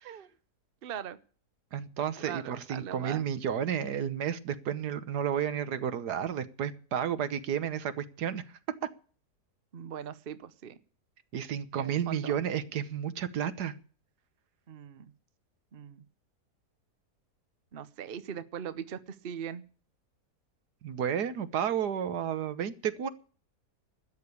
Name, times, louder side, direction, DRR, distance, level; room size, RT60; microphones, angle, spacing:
voice 1, 0.8-1.2 2.2-3.2 9.7-10.8 11.8-12.3 14.7-15.1 15.7-16.0 17.7-19.6, right 8 dB, 45° right, 0.9 m, -40 dB
voice 2, 1.7-8.4 11.3-13.7 20.8-23.1, right 8 dB, 80° right, 1.6 m, -32 dB
13.0 x 8.7 x 8.5 m
omnidirectional pair, 1.7 m